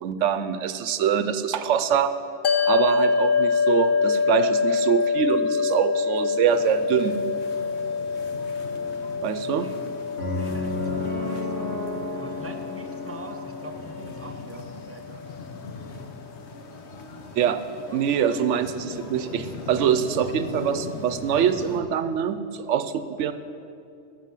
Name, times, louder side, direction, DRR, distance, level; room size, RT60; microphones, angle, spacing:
voice 1, 0.0-2.1 2.7-7.2 9.2-9.7 17.3-17.6 17.9-23.3, right 8 dB, 80° right, 11 dB, 0.9 m, -24 dB
sound 1, 2.4-14.9, left 5 dB, 50° left, 0.8 m, -26 dB
sound 2, 6.4-21.8, left 4 dB, 65° left, 1.2 m, -40 dB
voice 2, 9.4-9.8 10.3-11.8 12.1-15.2 17.4-18.4, right 1 dB, 15° right, 5 dB, 0.6 m, -43 dB
sound 3, 10.2-14.3, left 2 dB, 80° left, 3.0 m, -32 dB
13.0 x 7.1 x 7.4 m, 2.6 s
omnidirectional pair, 1.2 m